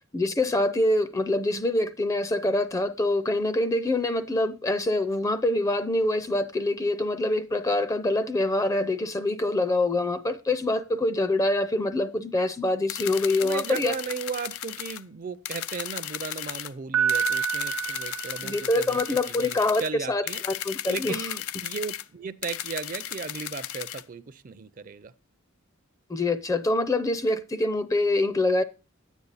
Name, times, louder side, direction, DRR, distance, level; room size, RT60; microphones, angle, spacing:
voice 1, 0.1-13.9 18.4-21.3 26.1-28.6, left 2 dB, 15° left, 0.5 m, -25 dB
sound 1, 12.9-15.0 15.5-16.7 17.1-19.9 20.3-22.0 22.4-24.0, left 12 dB, 90° left, 0.5 m, -35 dB
voice 2, 13.4-20.4 20.9-25.1, right 5 dB, 40° right, 0.5 m, -36 dB
Piano, 16.9-19.0, right 7 dB, 70° right, 0.8 m, -28 dB
10.0 x 8.2 x 4.0 m
head